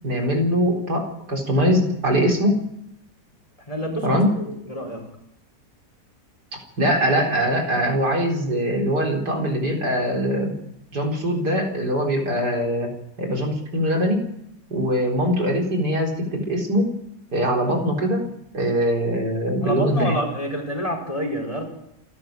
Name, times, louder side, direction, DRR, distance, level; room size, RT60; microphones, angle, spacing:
voice 1, 0.0-2.6 4.0-4.3 6.8-10.5 10.9-12.9 13.2-14.3 14.7-16.9 17.3-18.2 18.5-20.2, equal, 65° right, 1 dB, 4.7 m, -22 dB
voice 2, 3.7-5.0 19.6-21.6, equal, 20° left, 3 dB, 5.1 m, -28 dB
28.0 x 12.5 x 7.6 m, 0.79 s
omnidirectional pair, 1.9 m